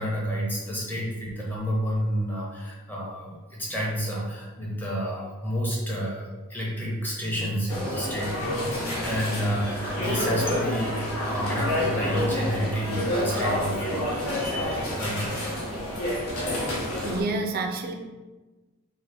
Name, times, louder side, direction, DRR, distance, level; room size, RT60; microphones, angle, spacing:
voice 1, 0.0-15.5, equal, 10° left, -4 dB, 0.6 m, -30 dB
sound 1, 7.7-17.2, left 1 dB, 85° left, 0.8 m, -28 dB
voice 2, 17.0-17.9, right 2 dB, 45° right, 3 dB, 0.4 m, -29 dB
2.7 x 2.5 x 3.3 m, 1.2 s
head